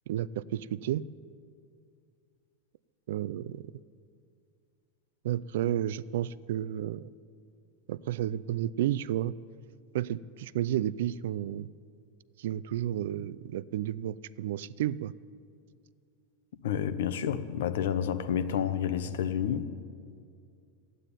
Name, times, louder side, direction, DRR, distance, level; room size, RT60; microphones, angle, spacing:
voice 1, 0.1-1.0 3.1-3.6 5.2-7.1 7.9-9.3 9.9-11.7 12.4-15.1, right 12 dB, 70° right, 0.4 m, -32 dB
voice 2, 16.6-19.7, left 9 dB, 80° left, 0.9 m, -29 dB
13.5 x 9.1 x 9.9 m
supercardioid pair, 170°, 0 cm